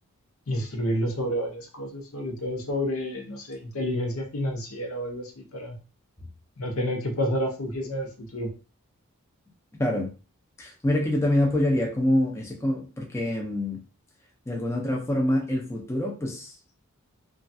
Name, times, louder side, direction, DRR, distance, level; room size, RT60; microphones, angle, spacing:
voice 1, 0.5-5.8 6.6-8.5, equal, 65° left, 0.8 m, -30 dB
voice 2, 10.6-13.8 14.5-16.6, left 1 dB, 15° left, 0.5 m, -25 dB
3.1 x 2.4 x 2.6 m
head